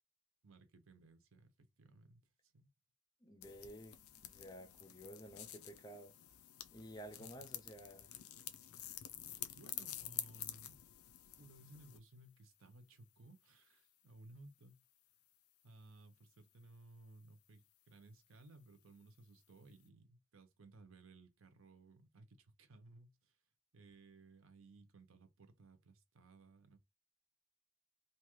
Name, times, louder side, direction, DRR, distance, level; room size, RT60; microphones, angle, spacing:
voice 1, 0.4-2.7 7.2-7.5 9.5-10.8 11.4-14.8 15.6-23.4 23.7-26.8, right 2 dB, 65° right, 0.7 m, -60 dB
voice 2, 3.2-6.1 6.7-8.1, equal, 20° left, 0.5 m, -53 dB
sound 1, 3.4-12.0, left 12 dB, 85° left, 0.4 m, -49 dB
2.8 x 2.3 x 3.0 m
head